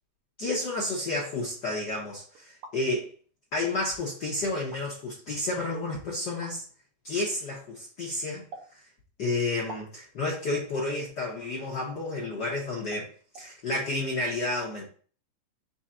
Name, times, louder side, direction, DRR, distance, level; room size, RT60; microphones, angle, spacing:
voice 1, 0.4-3.1 3.5-6.6 7.0-8.4 9.2-13.1 13.4-14.8, left 2 dB, 70° left, -4 dB, 1.0 m, -31 dB
sound 1, 2.3-2.8 3.7-3.8 4.6-4.8 6.4-6.6 8.5-8.7 9.7-9.9 10.8-11.0 12.2-12.3 12.9-13.1 13.3-13.5, right 2 dB, 75° right, 1.3 m, -44 dB
4.7 x 2.5 x 4.2 m, 0.42 s
omnidirectional pair, 3.3 m